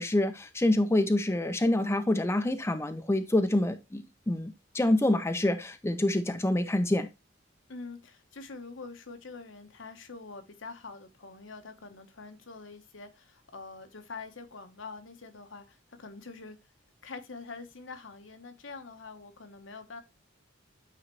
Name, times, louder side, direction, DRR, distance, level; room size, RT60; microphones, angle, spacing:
voice 1, 0.0-7.1, left 1 dB, 15° left, 0.5 m, -27 dB
voice 2, 7.7-16.6 17.0-20.0, left 4 dB, 75° left, 1.1 m, -45 dB
8.7 x 3.9 x 3.0 m
head